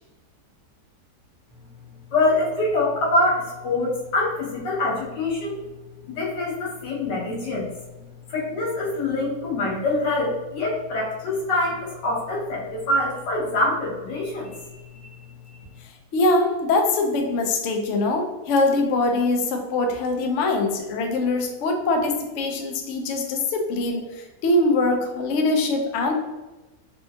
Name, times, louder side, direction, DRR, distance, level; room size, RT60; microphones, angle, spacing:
voice 1, 2.1-5.6 6.1-7.7 8.3-14.6 14.9-15.1, left 2 dB, 90° left, -4 dB, 1.6 m, -25 dB
voice 2, 16.1-26.1, left 2 dB, 70° left, 3 dB, 0.7 m, -23 dB
4.3 x 2.6 x 2.3 m, 1.1 s
omnidirectional pair, 1.8 m